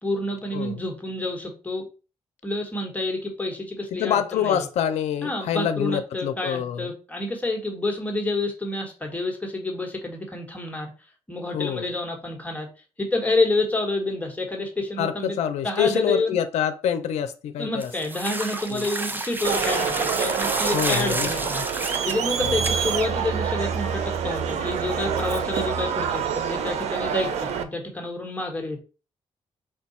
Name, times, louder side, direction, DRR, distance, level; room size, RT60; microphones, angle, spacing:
voice 1, 0.0-1.9 2.4-4.6 5.2-10.9 11.3-12.7 13.0-15.4 15.6-16.4 17.6-21.6 22.1-28.8, left 2 dB, 15° left, 1.2 m, -28 dB
voice 2, 3.9-6.9 11.5-11.9 15.0-17.9 18.7-18.9 20.7-21.3 22.4-22.5, left 9 dB, 90° left, 0.5 m, -26 dB
sound 1, 17.8-22.2 22.6-22.7, right 2 dB, 20° right, 0.6 m, -30 dB
Crowd, 19.4-27.6, right 7 dB, 90° right, 0.5 m, -27 dB
4.7 x 2.3 x 4.1 m
cardioid pair, 90°, 11 cm